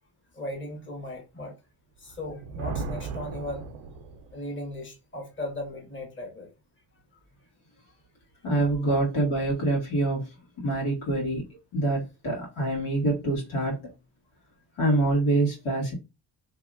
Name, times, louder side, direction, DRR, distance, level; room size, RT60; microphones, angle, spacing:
voice 1, 0.3-1.5 2.0-3.6 4.3-6.5 8.8-9.0, left 1 dB, 25° left, 1.3 m, -37 dB
Thunder, 2.1-4.5, right 4 dB, 90° right, 0.6 m, -36 dB
voice 2, 8.4-10.3 10.6-11.5 11.7-13.8 14.8-15.9, right 2 dB, 80° left, 1.8 m, -25 dB
2.8 x 2.7 x 2.5 m
supercardioid pair, 60°, 48 cm